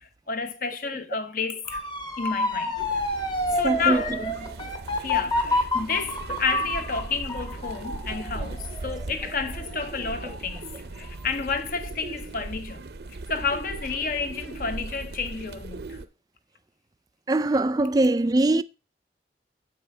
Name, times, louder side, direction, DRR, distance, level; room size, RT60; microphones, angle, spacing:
voice 1, 0.0-1.8 2.2-3.1 3.5-4.1 5.0-10.7 10.9-16.0, left 4 dB, 50° left, 1.0 m, -31 dB
Motor vehicle (road) / Siren, 1.7-10.6 11.0-11.4, left 1 dB, 25° left, 1.2 m, -29 dB
sound 1, 2.8-16.1, right 3 dB, 65° right, 0.6 m, -38 dB
voice 2, 3.6-4.0 17.3-18.6, right 2 dB, 20° right, 0.3 m, -22 dB
7.7 x 5.4 x 5.6 m
head